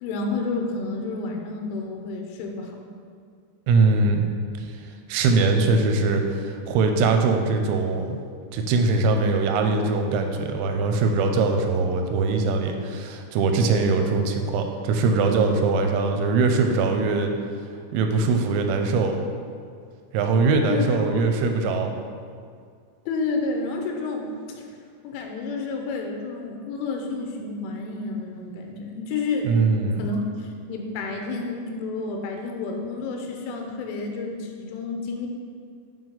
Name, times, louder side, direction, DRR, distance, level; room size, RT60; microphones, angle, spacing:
voice 1, 0.0-2.7 20.7-21.3 23.1-24.3 24.6-24.7 25.0-29.5 30.0-35.3, left 3 dB, 85° left, 2 dB, 3.2 m, -30 dB
voice 2, 3.7-4.2 5.1-8.2 8.5-17.3 17.9-19.2 20.1-21.9 29.4-30.0, right 3 dB, 85° right, 5 dB, 2.8 m, -22 dB
8.0 x 4.5 x 3.9 m, 2.2 s
omnidirectional pair, 5.7 m